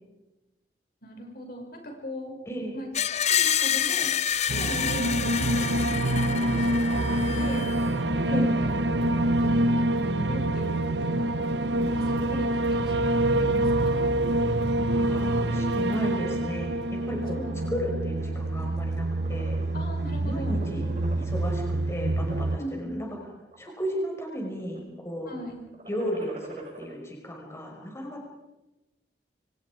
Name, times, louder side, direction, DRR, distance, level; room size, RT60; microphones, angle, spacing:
voice 1, 1.0-2.4 2.7-4.1 4.5-7.6 8.1-8.4 9.1-10.7 11.0-11.4 11.9-12.9 13.4-14.1 17.3-17.9 19.7-20.9 22.6-23.0 25.3-25.6, equal, 60° left, 2 dB, 6.1 m, -39 dB
voice 2, 2.5-2.8 8.3-8.6 14.9-17.4 17.7-19.6 20.1-20.9 21.3-23.1 23.6-25.3 25.9-28.3, equal, 15° left, 0 dB, 5.7 m, -34 dB
Screech, 2.9-7.9, left 9 dB, 40° left, 0.8 m, -28 dB
sound 1, 4.5-22.6, right 1 dB, 85° right, 1.2 m, -26 dB
sound 2, 16.9-17.8 18.2-18.5 18.8-20.0 20.4-21.5 22.2-22.6 23.2-24.0 24.3-24.8 25.6-26.9, right 2 dB, 40° right, 6.2 m, -45 dB
30.0 x 25.5 x 5.0 m, 1.0 s
head